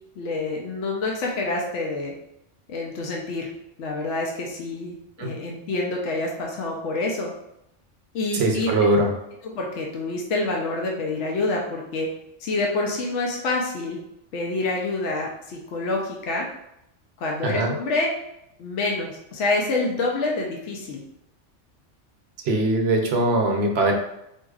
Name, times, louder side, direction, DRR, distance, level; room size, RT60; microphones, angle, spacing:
voice 1, 0.2-2.1 2.7-3.5 3.8-7.3 8.1-8.7 9.5-12.1 12.4-14.0 14.3-16.5 17.2-18.1 18.6-21.0, left 2 dB, 75° left, 0 dB, 0.9 m, -27 dB
voice 2, 8.3-9.1 17.4-17.8 22.4-23.9, right 2 dB, 65° right, 2 dB, 0.8 m, -21 dB
4.0 x 2.7 x 2.3 m, 0.81 s
omnidirectional pair, 1.3 m